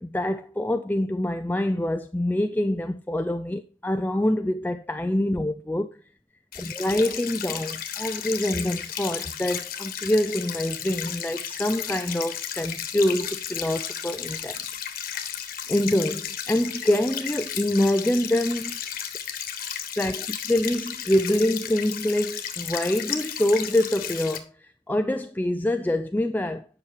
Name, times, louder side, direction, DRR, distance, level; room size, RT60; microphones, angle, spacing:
voice 1, 0.0-5.9 6.6-14.6 15.7-18.8 20.0-24.5 24.9-26.6, left 1 dB, 10° left, 0.4 m, -25 dB
sound 1, 6.5-24.4, left 9 dB, 50° left, 1.4 m, -34 dB
10.5 x 6.2 x 4.6 m
head